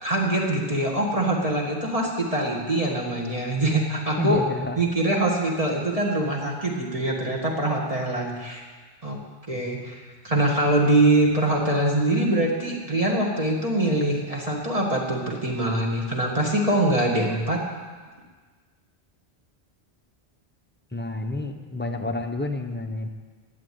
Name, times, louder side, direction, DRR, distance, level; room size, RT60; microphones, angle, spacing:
voice 1, 0.0-4.4 4.8-8.6 9.0-9.2 9.5-17.6, right 1 dB, 35° right, -2 dB, 2.1 m, -23 dB
voice 2, 4.2-4.8 20.9-23.1, left 2 dB, 10° left, 4 dB, 0.8 m, -29 dB
12.0 x 8.1 x 9.4 m, 1.4 s
omnidirectional pair, 1.1 m